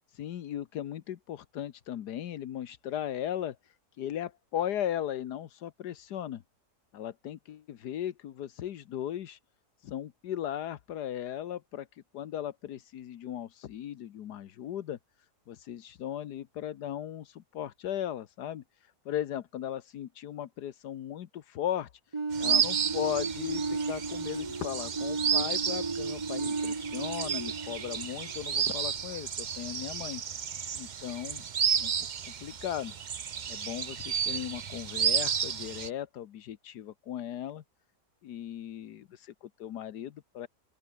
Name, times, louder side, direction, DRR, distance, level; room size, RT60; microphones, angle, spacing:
voice 1, 0.1-3.6 4.0-6.4 6.9-9.4 9.8-11.9 12.1-15.0 15.5-18.6 19.0-21.9 22.4-30.2 30.7-31.4 31.8-31.9 32.4-32.9 33.5-37.6 38.2-40.5, left 11 dB, 85° left, 1.5 m, -37 dB
sound 1, 22.1-28.9, right 4 dB, 25° right, 0.8 m, -35 dB
sound 2, 22.3-35.9, right 7 dB, 50° right, 0.5 m, -32 dB
open air
omnidirectional pair, 1.7 m